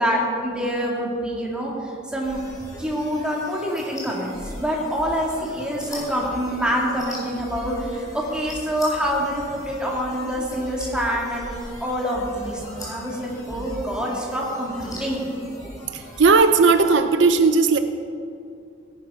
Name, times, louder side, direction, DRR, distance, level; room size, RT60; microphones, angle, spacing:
voice 1, 0.0-2.4 2.8-15.3, equal, 5° right, -3 dB, 2.6 m, -26 dB
sound 1, 2.2-16.9, left 1 dB, 20° left, 3.7 m, -39 dB
voice 2, 16.2-17.8, right 4 dB, 75° right, 9 dB, 0.6 m, -16 dB
17.0 x 11.0 x 5.1 m, 2.5 s
head